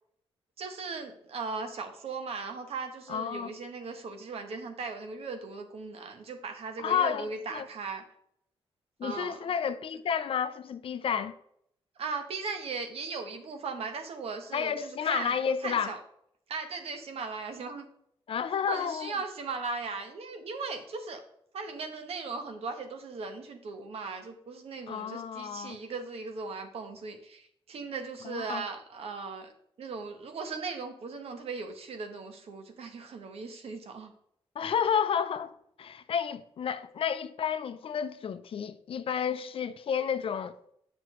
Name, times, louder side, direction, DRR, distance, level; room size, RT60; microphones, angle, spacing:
voice 1, 0.6-8.0 9.0-9.4 12.0-15.4 15.6-16.0 16.5-17.9 18.7-21.2 21.5-29.5 29.8-34.1, right 4 dB, 80° right, 1.1 m, -38 dB
voice 2, 3.1-3.5 6.8-7.7 9.0-11.3 14.5-15.9 18.3-19.1 24.9-25.8 28.2-28.6 34.6-40.6, left 7 dB, 65° left, 0.5 m, -31 dB
7.9 x 5.9 x 3.1 m
wide cardioid pair, 105°, 10 cm